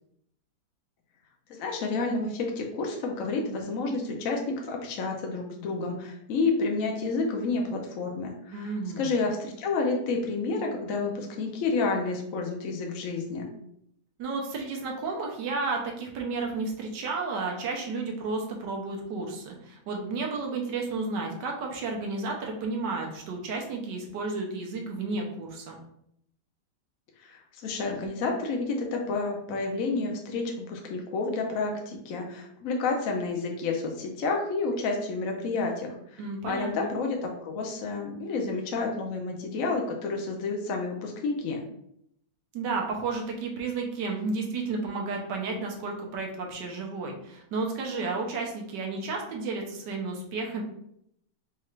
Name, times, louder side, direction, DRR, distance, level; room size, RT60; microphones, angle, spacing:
voice 1, 1.5-13.5 27.2-36.2 36.5-41.6, left 3 dB, 65° left, 1 dB, 0.9 m, -30 dB
voice 2, 8.5-9.1 14.2-25.8 36.2-36.7 42.5-50.6, right 3 dB, 85° right, 1 dB, 1.4 m, -32 dB
4.3 x 2.4 x 3.1 m, 0.74 s
omnidirectional pair, 1.8 m